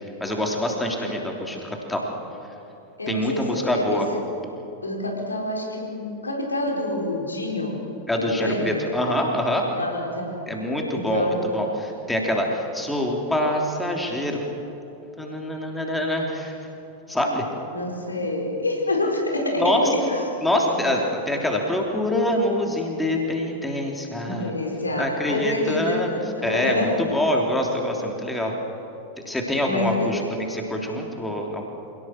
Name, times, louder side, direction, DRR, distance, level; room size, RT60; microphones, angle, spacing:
voice 1, 0.2-2.0 3.1-4.1 8.1-9.6 10.5-14.5 15.2-16.6 17.1-17.5 19.6-19.8 20.4-24.5 25.0-26.1 26.4-28.5 29.2-31.7, left 1 dB, 5° left, 1 dB, 3.3 m, -25 dB
voice 2, 3.0-4.2 4.8-7.8 8.2-8.8 9.7-10.5 10.9-11.4 17.7-20.2 20.8-20.9 24.2-27.2 29.6-30.2, left 1 dB, 80° left, 0 dB, 4.4 m, -27 dB
27.0 x 18.0 x 7.8 m, 2.8 s
figure-of-eight pair, 90°, 0 cm